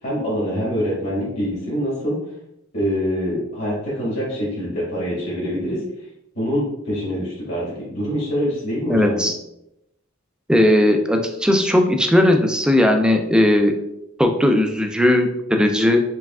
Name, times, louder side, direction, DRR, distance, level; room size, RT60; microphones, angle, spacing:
voice 1, 0.0-2.2 2.7-5.8 6.3-9.3, equal, 60° left, -7 dB, 1.5 m, -25 dB
voice 2, 8.9-9.4 10.5-13.7 14.2-16.0, left 1 dB, 5° right, 4 dB, 0.4 m, -17 dB
4.7 x 3.3 x 2.3 m, 0.84 s
head